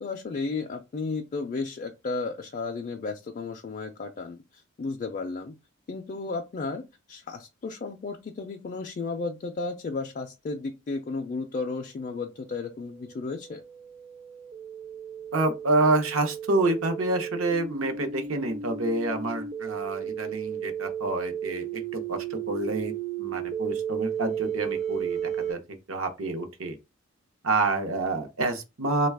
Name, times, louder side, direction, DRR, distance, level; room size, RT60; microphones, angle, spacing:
voice 1, 0.0-5.5 5.9-13.6, left 3 dB, 40° left, 0.4 m, -33 dB
sound 1, 12.3-25.5, right 8 dB, 30° right, 0.4 m, -34 dB
voice 2, 15.3-22.9 23.2-26.8 27.4-29.1, right 2 dB, 75° right, 0.7 m, -28 dB
3.1 x 2.3 x 3.4 m
head